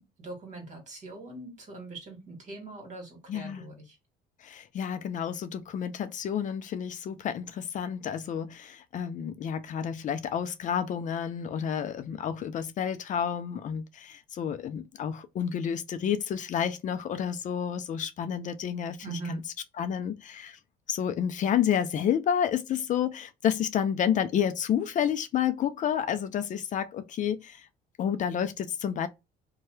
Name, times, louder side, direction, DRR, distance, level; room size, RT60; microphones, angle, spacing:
voice 1, 0.0-4.0 19.0-19.4, right 3 dB, 45° right, 1.6 m, -41 dB
voice 2, 3.3-3.7 4.4-19.4 19.8-20.6 20.9-27.7 28.0-29.1, left 8 dB, 50° left, 0.4 m, -30 dB
2.7 x 2.2 x 3.2 m
cardioid pair, 110°, 17 cm